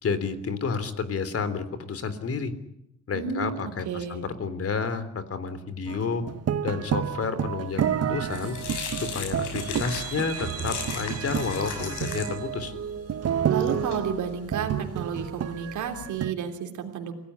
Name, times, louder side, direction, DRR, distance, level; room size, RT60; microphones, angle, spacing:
voice 1, 0.0-2.5 3.1-6.2 6.6-8.6 9.0-12.7, left 5 dB, 50° left, 13 dB, 3.5 m, -30 dB
voice 2, 3.1-4.2 13.5-17.1, right 7 dB, 75° right, 4 dB, 3.3 m, -32 dB
sound 1, 5.9-16.3, right 9 dB, 55° right, 1.3 m, -30 dB
sound 2, 7.8-16.0, left 7 dB, 85° left, 6.8 m, -38 dB
27.0 x 17.5 x 10.0 m, 0.79 s
cardioid pair, 90°, 30 cm